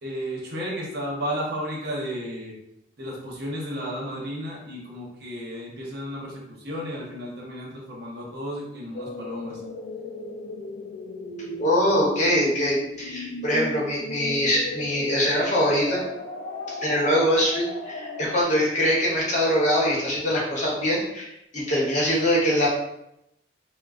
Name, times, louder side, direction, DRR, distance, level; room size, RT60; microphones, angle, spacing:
voice 1, 0.0-2.5 3.0-9.6, equal, 60° right, -3 dB, 0.8 m, -33 dB
sound 1, 8.9-18.4, left 2 dB, 80° left, 0.3 m, -36 dB
voice 2, 11.6-16.0 16.8-22.7, equal, 40° left, -4 dB, 0.8 m, -23 dB
3.6 x 2.0 x 2.4 m, 0.83 s
head